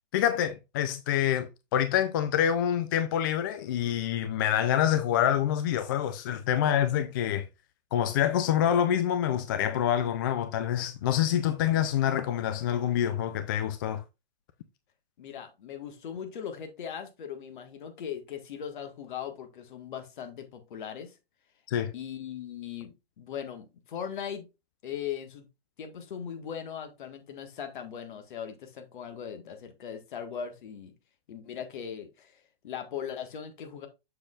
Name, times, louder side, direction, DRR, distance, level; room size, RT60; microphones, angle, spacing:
voice 1, 0.1-7.5 7.9-14.0 21.7-21.9, left 10 dB, 20° left, 0.3 m, -26 dB
voice 2, 15.2-21.1 21.9-24.5 24.8-25.5 25.8-30.9 31.3-32.3 32.6-33.9, left 8 dB, 55° left, 1.7 m, -39 dB
6.8 x 6.6 x 2.4 m
figure-of-eight pair, 120°, 30 cm